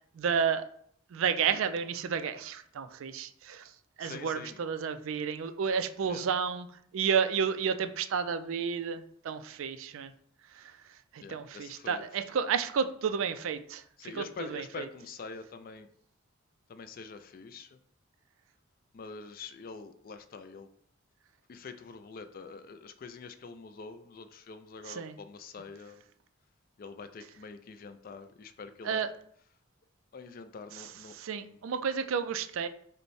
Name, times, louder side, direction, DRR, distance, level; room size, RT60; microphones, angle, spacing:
voice 1, 0.1-0.6 1.1-3.7 4.0-6.7 6.9-10.1 10.5-10.8 11.1-13.8 14.1-14.2 14.5-14.9 24.9-25.2 28.8-29.1 31.1-32.7, right 6 dB, 70° right, 11 dB, 0.3 m, -31 dB
voice 2, 4.0-4.6 6.1-6.3 11.2-12.2 14.0-15.9 16.7-17.8 18.9-20.7 21.5-26.0 26.8-29.1 30.1-31.6, left 4 dB, 40° left, 9 dB, 0.3 m, -45 dB
5.2 x 2.1 x 4.6 m, 0.64 s
head